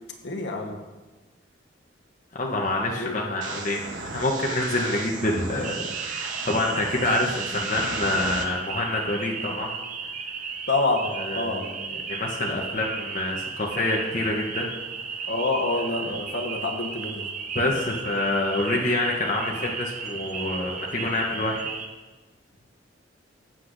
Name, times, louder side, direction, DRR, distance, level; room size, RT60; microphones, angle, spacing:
voice 1, 0.2-0.8 2.9-3.2 10.7-11.7 15.3-17.3, left 2 dB, 65° left, 2 dB, 1.2 m, -27 dB
voice 2, 2.3-9.7 11.2-11.7 12.1-14.7 17.5-21.6, left 2 dB, 40° left, -2 dB, 0.9 m, -27 dB
sound 1, 3.4-8.4, right 4 dB, 85° right, 1.0 m, -35 dB
sound 2, 5.6-21.9, right 5 dB, 45° right, 0.7 m, -35 dB
15.5 x 7.9 x 2.6 m, 1.2 s
head